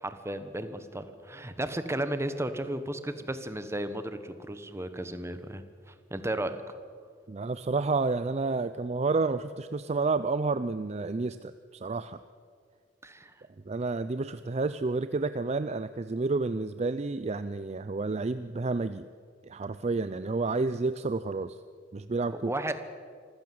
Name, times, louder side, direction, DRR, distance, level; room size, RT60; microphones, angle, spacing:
voice 1, 0.0-6.6 13.0-13.3 22.5-22.8, right 1 dB, 15° right, 10 dB, 1.2 m, -34 dB
voice 2, 7.3-12.2 13.7-19.1 19.4-21.6 21.9-22.5, right 3 dB, 35° right, 13 dB, 0.5 m, -30 dB
25.5 x 15.5 x 7.8 m, 2.1 s
head